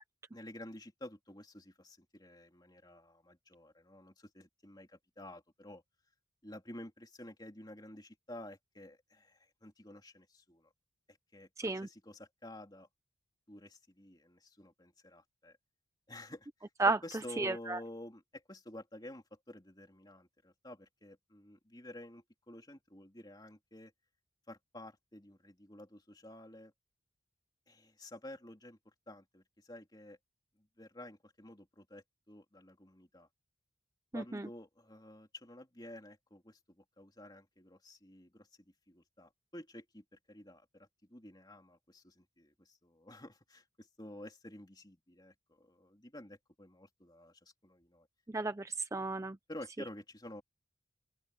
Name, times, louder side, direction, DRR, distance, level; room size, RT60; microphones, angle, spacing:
voice 1, 0.3-5.8 6.4-10.7 11.1-12.9 13.5-15.6 16.1-16.7 17.0-23.9 24.5-26.7 27.7-30.2 30.6-33.3 34.1-48.1 49.5-50.4, left 1 dB, 20° left, 3.2 m, -51 dB
voice 2, 11.6-11.9 16.8-17.0 17.4-17.8 34.1-34.5 48.3-49.4, right 3 dB, 15° right, 0.4 m, -33 dB
open air
head